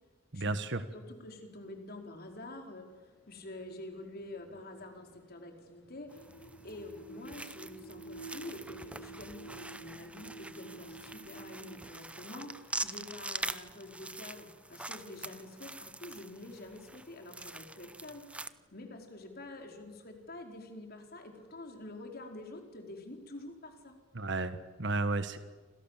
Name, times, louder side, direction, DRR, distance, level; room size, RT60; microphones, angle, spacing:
voice 1, 0.3-0.8 24.1-25.4, right 3 dB, 65° right, 10 dB, 1.5 m, -33 dB
voice 2, 0.9-6.2 6.6-18.3 18.7-24.0, left 2 dB, 50° left, 4 dB, 4.6 m, -47 dB
sound 1, 2.9-20.4, right 3 dB, 70° left, 7.3 m, -54 dB
sound 2, 6.1-18.5, right 2 dB, 5° right, 0.8 m, -44 dB
29.0 x 26.5 x 7.5 m, 1.4 s
head